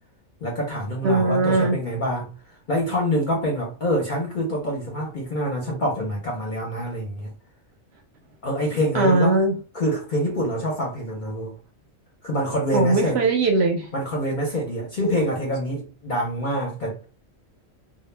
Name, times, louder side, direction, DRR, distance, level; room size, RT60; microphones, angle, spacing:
voice 1, 0.4-7.3 8.4-9.4 9.7-11.5 12.2-13.2 13.9-17.0, equal, 50° left, 0.6 m, -26 dB
voice 2, 1.0-1.8 8.9-9.6 12.7-13.9, right 2 dB, 65° right, 0.7 m, -20 dB
2.1 x 2.1 x 3.2 m
omnidirectional pair, 1.3 m